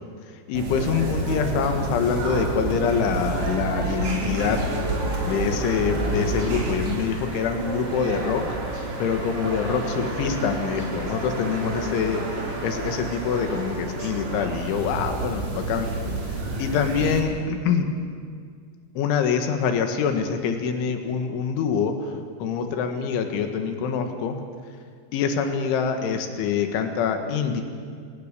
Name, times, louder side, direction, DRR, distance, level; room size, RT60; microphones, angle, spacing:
voice 1, 0.5-4.7 5.2-15.9 16.6-17.9 19.0-24.4 25.1-27.6, left 6 dB, 85° left, 6 dB, 4.1 m, -25 dB
sound 1, 0.5-17.2, right 2 dB, 40° right, 4.1 m, -29 dB
25.5 x 20.0 x 6.9 m, 2.1 s
omnidirectional pair, 5.3 m